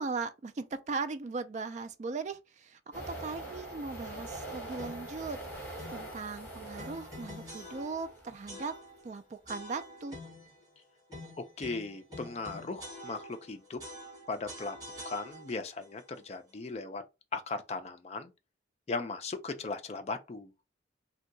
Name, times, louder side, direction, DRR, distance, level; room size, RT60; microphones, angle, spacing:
voice 1, 0.0-8.7 9.0-10.2, right 4 dB, 40° right, 0.3 m, -38 dB
sound 1, 2.9-8.7, right 1 dB, 10° left, 1.3 m, -44 dB
sound 2, 4.8-5.2 5.8-6.1 6.8-8.1 8.5-9.1 9.5-10.5 11.1-13.5 13.8-15.7, left 1 dB, 20° right, 1.4 m, -46 dB
voice 2, 11.4-13.8 14.3-14.8 15.0-17.0 17.3-18.3 18.9-20.5, left 3 dB, 35° left, 0.4 m, -37 dB
2.7 x 2.2 x 3.8 m
head